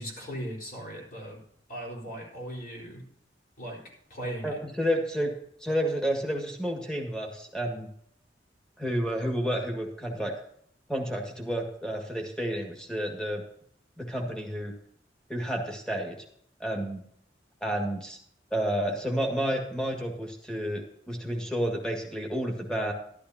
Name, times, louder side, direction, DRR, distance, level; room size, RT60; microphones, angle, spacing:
voice 1, 0.0-1.4 1.7-3.0 3.6-3.8 4.1-4.5, right 1 dB, 50° left, -2 dB, 4.2 m, -38 dB
voice 2, 4.4-5.3 5.6-7.9 8.8-10.3 10.9-13.4 14.0-14.7 15.3-16.2 16.6-17.0 17.6-18.2 18.5-22.9, equal, 5° left, 1 dB, 1.8 m, -30 dB
12.0 x 12.0 x 2.8 m, 0.68 s
head